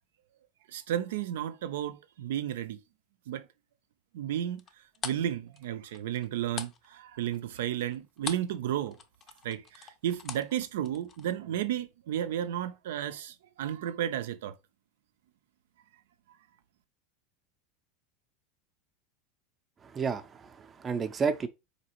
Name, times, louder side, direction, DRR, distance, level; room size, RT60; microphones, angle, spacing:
voice 1, 0.7-2.8 3.3-3.5 4.1-4.6 5.0-9.0 9.4-14.5, right 11 dB, 80° right, 0.4 m, -33 dB
sound 1, 4.6-8.6 8.9-11.3, left 6 dB, 35° left, 0.5 m, -41 dB
voice 2, 19.9-21.5, right 5 dB, 25° right, 0.5 m, -31 dB
4.0 x 2.8 x 2.9 m
hypercardioid pair, 100°, 0 cm